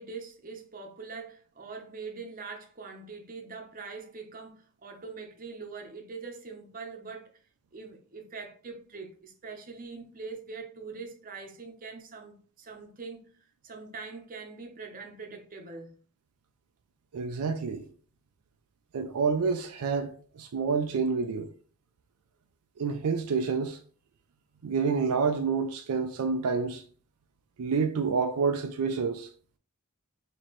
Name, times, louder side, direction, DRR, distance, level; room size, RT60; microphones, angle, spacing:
voice 1, 0.0-7.3 7.7-13.3 13.6-15.9, right 4 dB, 40° right, 0.8 m, -43 dB
voice 2, 17.1-17.8 18.9-21.5 22.8-23.8 24.6-26.8 27.6-29.3, right 5 dB, 80° right, 0.4 m, -28 dB
4.3 x 2.9 x 3.0 m
head